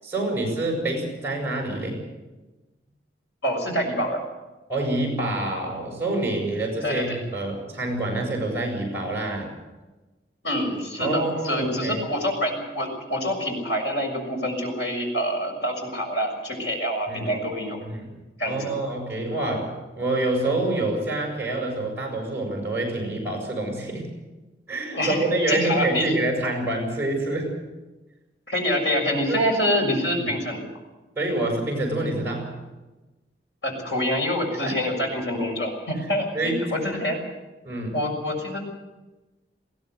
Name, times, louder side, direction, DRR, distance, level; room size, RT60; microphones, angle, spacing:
voice 1, 0.0-2.0 4.7-9.5 11.0-12.0 17.1-17.3 17.8-18.1 18.5-24.1 24.7-27.5 29.1-29.4 30.2-30.3 31.2-32.6 34.6-34.7 36.3-36.6 37.6-38.0, right 2 dB, 15° right, 1 dB, 7.4 m, -27 dB
voice 2, 3.4-4.2 6.8-7.2 10.4-17.8 18.4-18.7 24.9-26.1 28.5-30.6 33.6-37.2 37.9-38.6, equal, 80° left, 2 dB, 6.5 m, -26 dB
21.0 x 16.0 x 8.1 m, 1.1 s
head